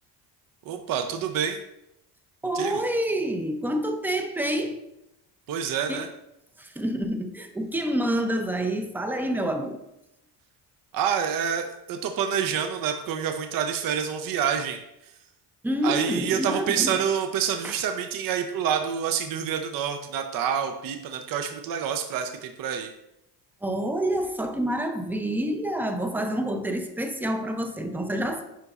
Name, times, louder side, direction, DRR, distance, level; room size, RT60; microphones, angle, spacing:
voice 1, 0.6-1.6 2.5-2.8 5.5-6.1 10.9-15.1 15.8-22.9, right 8 dB, 55° right, 6 dB, 0.6 m, -27 dB
voice 2, 2.4-4.8 5.9-6.0 6.6-9.8 15.6-17.0 17.6-17.7 23.6-28.4, right 1 dB, 5° right, 6 dB, 0.5 m, -28 dB
10.5 x 4.0 x 2.4 m, 0.85 s
cardioid pair, 130°, 42 cm